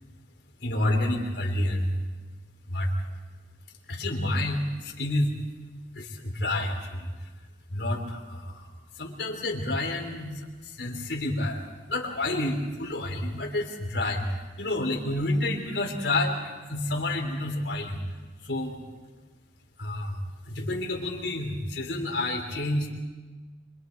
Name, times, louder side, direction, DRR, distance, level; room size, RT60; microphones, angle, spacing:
voice 1, 0.6-1.9 2.7-2.9 3.9-5.3 5.9-7.1 7.7-8.7 9.0-18.0 18.4-18.8 19.8-20.2 20.5-22.9, left 1 dB, 80° left, 0 dB, 3.9 m, -29 dB
27.0 x 24.5 x 4.8 m, 1.3 s
head